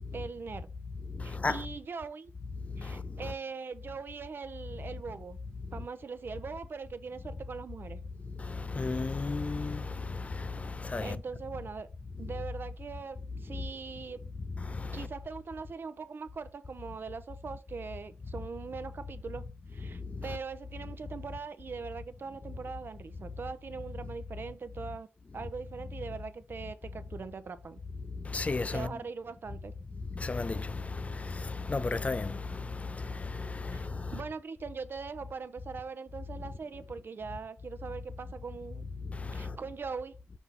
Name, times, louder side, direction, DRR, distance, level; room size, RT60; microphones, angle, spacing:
voice 1, 0.1-0.7 1.2-2.3 2.8-5.4 5.7-8.0 11.0-11.9 12.2-14.2 14.9-19.4 19.7-25.1 25.3-27.8 28.7-29.7 33.7-38.9 39.3-40.2, right 5 dB, 55° right, 0.7 m, -41 dB
voice 2, 1.1-1.7 2.6-3.3 5.6-5.8 8.2-11.2 13.5-13.7 14.6-15.1 19.8-20.4 28.0-29.0 30.0-34.2 39.0-39.6, left 3 dB, 30° left, 0.5 m, -35 dB
5.5 x 4.6 x 4.1 m
cardioid pair, 65°, 4 cm